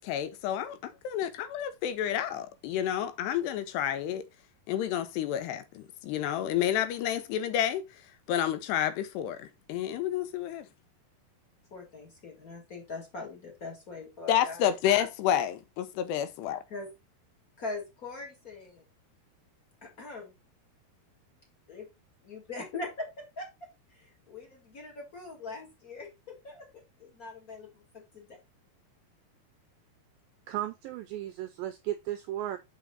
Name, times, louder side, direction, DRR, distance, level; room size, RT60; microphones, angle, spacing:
voice 1, 0.0-4.2 4.7-7.8 8.3-10.7 14.3-16.6, left 10 dB, 90° left, 3.0 m, -30 dB
voice 2, 11.7-15.0 16.7-16.9 17.6-18.8 19.8-20.3 21.7-21.9 22.2-23.1 23.4-23.5 23.9-26.8 27.2-27.7 28.1-28.4, left 3 dB, 40° left, 1.3 m, -41 dB
voice 3, 30.5-32.6, right 13 dB, 85° right, 2.0 m, -35 dB
6.3 x 6.1 x 4.0 m
omnidirectional pair, 4.7 m